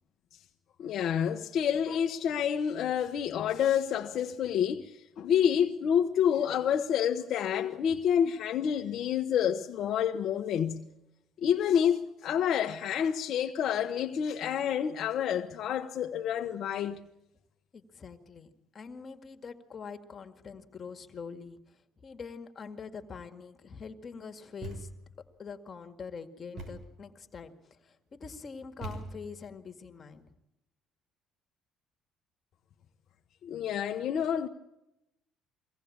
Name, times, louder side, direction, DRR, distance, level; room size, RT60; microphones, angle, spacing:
voice 1, 0.8-10.9 11.4-17.0 33.4-34.5, left 8 dB, 65° left, 1.1 m, -28 dB
voice 2, 17.7-24.9 25.4-30.3, left 5 dB, 40° left, 2.0 m, -44 dB
Thump thud, 24.6-25.2 26.6-27.0 28.8-29.5, right 2 dB, 55° right, 5.8 m, -42 dB
23.5 x 17.5 x 8.7 m
cardioid pair, 90°, 0 cm